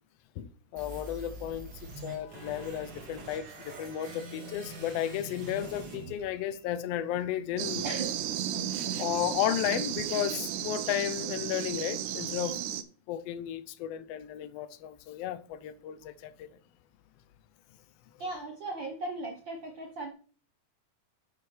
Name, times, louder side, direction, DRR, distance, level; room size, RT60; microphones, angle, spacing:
voice 1, 0.4-1.7 2.0-7.8 9.0-12.6 13.1-16.6, left 11 dB, 85° left, 1.4 m, -33 dB
sound 1, 0.8-6.8, right 2 dB, 40° right, 2.0 m, -44 dB
sound 2, 7.6-12.8, right 10 dB, 85° right, 2.2 m, -34 dB
voice 2, 7.8-8.2 8.5-8.7 12.5-12.7 18.2-20.1, right 2 dB, 65° right, 1.2 m, -38 dB
10.0 x 7.4 x 3.3 m
omnidirectional pair, 3.6 m